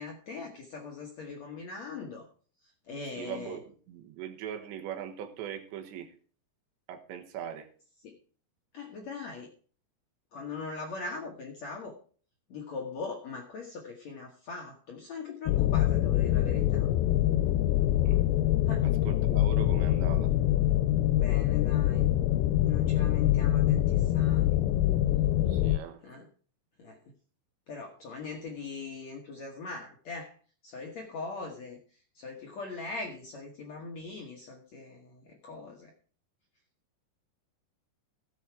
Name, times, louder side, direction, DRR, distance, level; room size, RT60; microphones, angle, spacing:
voice 1, 0.0-2.3 2.9-3.6 8.0-8.1 8.7-9.5 10.3-12.0 12.5-16.9 18.7-18.8 21.1-22.1 22.7-24.6 26.0-26.3 26.8-27.0 27.7-30.3 30.6-31.8 32.1-35.9, left 4 dB, 65° left, 1 dB, 1.8 m, -41 dB
voice 2, 3.1-6.1 6.9-7.7 18.1-18.2 18.8-20.3 25.5-26.0, right 9 dB, 80° right, 6 dB, 3.5 m, -40 dB
sound 1, 15.5-25.8, left 13 dB, 85° left, 2.9 m, -25 dB
16.0 x 7.2 x 4.7 m, 0.43 s
omnidirectional pair, 5.1 m